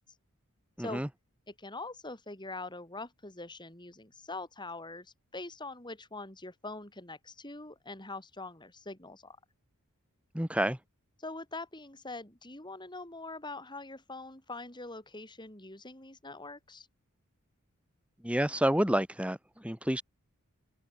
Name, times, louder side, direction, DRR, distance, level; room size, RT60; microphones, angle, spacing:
voice 1, 0.8-1.1 10.3-10.8 18.2-20.0, right 1 dB, 5° right, 2.2 m, -29 dB
voice 2, 1.5-9.4 11.2-16.9, left 2 dB, 20° left, 4.3 m, -43 dB
open air
head